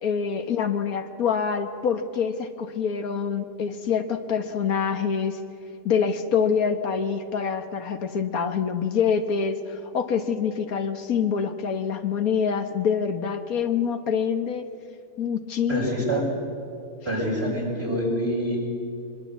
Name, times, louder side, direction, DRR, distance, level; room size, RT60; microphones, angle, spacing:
voice 1, 0.0-5.4 5.8-14.6 15.2-15.8 16.1-16.2, left 6 dB, 85° left, 8 dB, 1.8 m, -26 dB
voice 2, 15.7-16.2 17.0-18.6, equal, 45° right, -3 dB, 7.3 m, -26 dB
24.0 x 22.0 x 8.3 m, 2.5 s
omnidirectional pair, 1.5 m